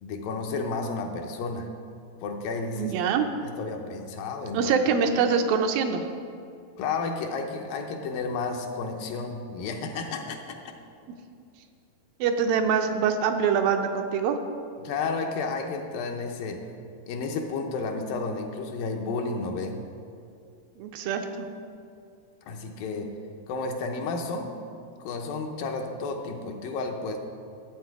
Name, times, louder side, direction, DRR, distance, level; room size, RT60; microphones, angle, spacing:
voice 1, 0.0-1.7 2.2-2.9 3.4-4.7 6.8-10.6 14.8-16.7 17.1-19.8 22.5-23.2 23.5-24.5 25.0-27.2, left 4 dB, 75° left, 3 dB, 2.4 m, -32 dB
voice 2, 2.8-3.3 4.5-6.1 12.2-14.4 20.8-21.5, right 6 dB, 80° right, 6 dB, 2.3 m, -24 dB
12.5 x 8.2 x 4.7 m, 2.4 s
omnidirectional pair, 4.2 m